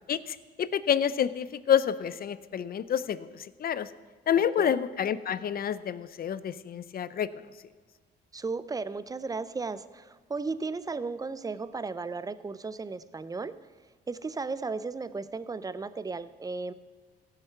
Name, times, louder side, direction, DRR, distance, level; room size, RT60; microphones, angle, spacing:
voice 1, 0.1-3.9 4.3-7.3, left 9 dB, 50° left, 16 dB, 0.5 m, -28 dB
voice 2, 8.3-13.7 14.1-16.7, right 4 dB, 20° right, 15 dB, 0.5 m, -35 dB
15.5 x 6.6 x 5.9 m, 1.5 s
cardioid pair, 90°, 20 cm